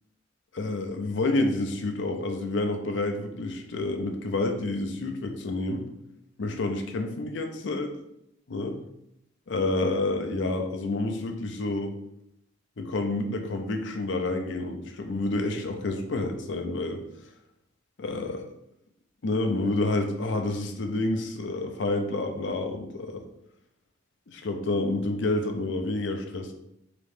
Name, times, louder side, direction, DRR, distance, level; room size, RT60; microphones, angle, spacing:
voice 1, 0.5-5.9 6.4-7.9 8.5-8.8 9.5-12.0 12.8-17.0 18.0-18.5 19.2-23.2 24.3-26.5, left 2 dB, 70° left, 5 dB, 0.6 m, -29 dB
3.7 x 2.9 x 3.6 m, 0.81 s
head